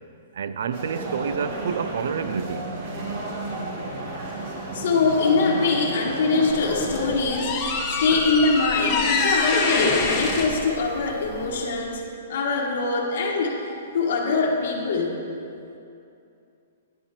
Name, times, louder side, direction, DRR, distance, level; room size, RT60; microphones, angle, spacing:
voice 1, 0.3-2.7, right 7 dB, 65° right, 12 dB, 0.4 m, -28 dB
sound 1, 0.7-7.1, right 2 dB, 35° right, 1.3 m, -33 dB
voice 2, 4.7-7.7 8.0-12.0 12.3-13.6 13.9-15.1, left 4 dB, 55° left, -2 dB, 1.3 m, -23 dB
sound 2, 6.5-11.7, left 4 dB, 20° left, 0.8 m, -25 dB
10.0 x 4.3 x 7.2 m, 2.6 s
hypercardioid pair, 170°, 0 cm